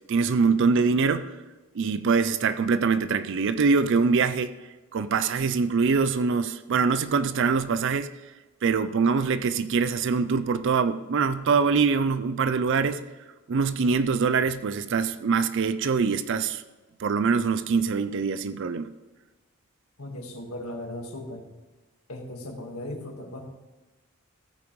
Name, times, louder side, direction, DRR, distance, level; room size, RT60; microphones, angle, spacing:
voice 1, 0.1-1.3 1.7-4.5 4.9-8.1 8.6-13.0 13.5-16.6 17.0-18.9, right 5 dB, 55° right, 13 dB, 0.4 m, -24 dB
voice 2, 20.0-21.4 22.1-23.4, left 1 dB, 85° left, 2 dB, 1.7 m, -37 dB
14.5 x 8.8 x 3.1 m, 1.2 s
head